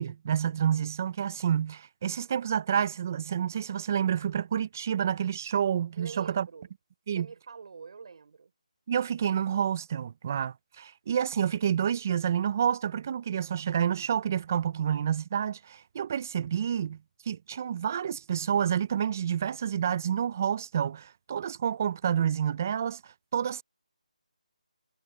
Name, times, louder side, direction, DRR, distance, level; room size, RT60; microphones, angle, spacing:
voice 1, 0.0-6.5 7.1-7.3 8.9-17.0 17.3-23.6, right 9 dB, 20° right, 0.4 m, -29 dB
voice 2, 6.0-6.7 7.1-8.5, right 5 dB, 45° right, 5.6 m, -45 dB
figure-of-eight pair, 170°, 4 cm